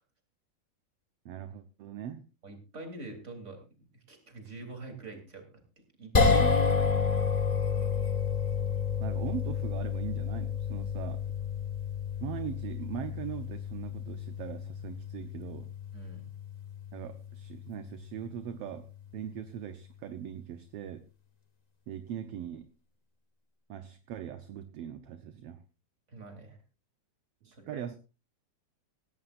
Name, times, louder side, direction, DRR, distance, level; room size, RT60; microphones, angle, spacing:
voice 1, 1.2-2.2 9.0-11.2 12.2-15.7 16.9-21.0 21.9-22.6 23.7-25.6 27.4-28.0, right 10 dB, 65° right, 9 dB, 1.7 m, -40 dB
voice 2, 2.4-5.6 6.0-6.9 15.9-16.3 26.1-26.6 27.5-27.9, right 2 dB, 25° right, 4 dB, 3.3 m, -46 dB
sound 1, 6.1-18.5, left 5 dB, 55° left, 0.4 m, -30 dB
17.0 x 16.5 x 2.5 m, 0.31 s
omnidirectional pair, 3.4 m